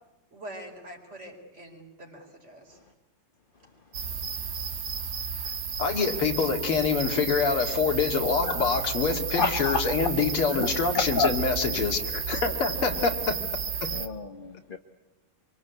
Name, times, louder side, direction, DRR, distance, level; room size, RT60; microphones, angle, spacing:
voice 1, 0.3-2.8, right 1 dB, 30° right, 2 dB, 4.7 m, -44 dB
sound 1, 3.9-14.1, right 7 dB, 55° right, 1.8 m, -32 dB
voice 2, 5.8-13.4, left 5 dB, 85° left, 4 dB, 3.1 m, -26 dB
voice 3, 9.3-9.7 10.6-11.3 13.9-14.8, left 4 dB, 30° left, 5 dB, 1.2 m, -29 dB
26.5 x 24.0 x 8.2 m, 0.99 s
omnidirectional pair, 2.3 m